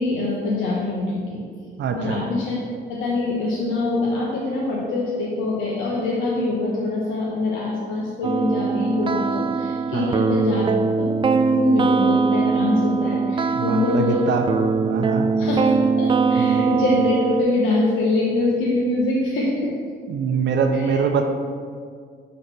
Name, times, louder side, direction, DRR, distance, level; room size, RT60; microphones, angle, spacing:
voice 1, 0.0-1.4 1.9-2.6 2.9-10.6 11.0-14.3 14.9-15.0 15.4-19.7 20.7-21.0, left 2 dB, 85° left, -4 dB, 1.1 m, -24 dB
voice 2, 1.8-2.2 9.9-10.2 13.6-14.5 14.8-15.3 16.4-16.6 20.1-21.2, right 6 dB, 65° right, 5 dB, 0.6 m, -23 dB
sound 1, 8.2-17.4, right 5 dB, 25° right, 0.3 m, -21 dB
6.7 x 4.0 x 5.9 m, 2.1 s
cardioid pair, 90°, 20 cm